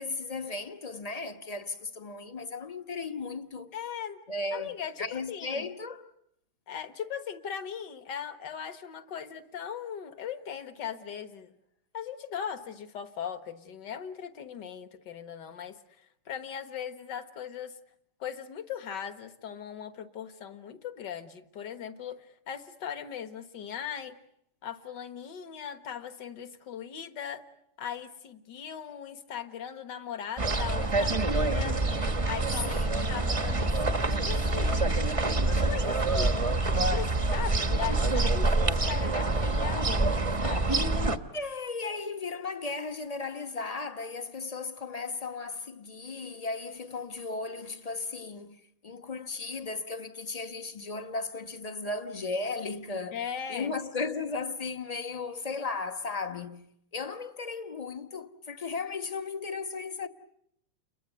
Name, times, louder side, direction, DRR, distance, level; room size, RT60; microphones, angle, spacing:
voice 1, 0.0-3.7 4.3-4.7 5.0-6.1 32.7-33.2 41.3-53.2 53.5-60.1, left 3 dB, 25° left, 0.9 m, -36 dB
voice 2, 3.7-4.2 4.5-5.7 6.7-11.5 11.9-17.8 18.2-24.2 24.6-27.4 27.8-31.8 32.2-35.0 35.5-36.3 36.6-40.8 53.1-53.8, left 8 dB, 55° left, 2.0 m, -39 dB
sound 1, 30.4-41.2, right 2 dB, 25° right, 0.8 m, -26 dB
30.0 x 22.5 x 8.1 m
omnidirectional pair, 2.3 m